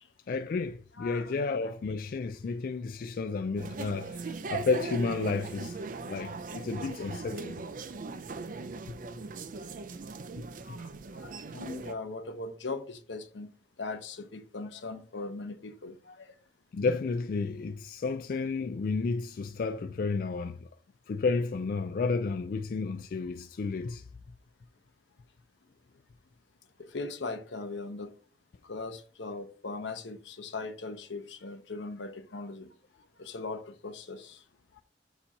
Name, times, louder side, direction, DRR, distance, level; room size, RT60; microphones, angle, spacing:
voice 1, 0.3-5.8 6.1-7.6 16.7-20.7 21.1-24.0, left 4 dB, 50° left, 0.3 m, -31 dB
voice 2, 0.9-1.7 3.0-3.1 10.6-13.5 13.8-16.3 26.8-28.1 28.6-32.7 33.2-34.4, left 3 dB, 85° left, 0.9 m, -40 dB
sound 1, 3.6-11.9, right 3 dB, 45° right, 0.4 m, -39 dB
7.0 x 2.9 x 5.2 m
head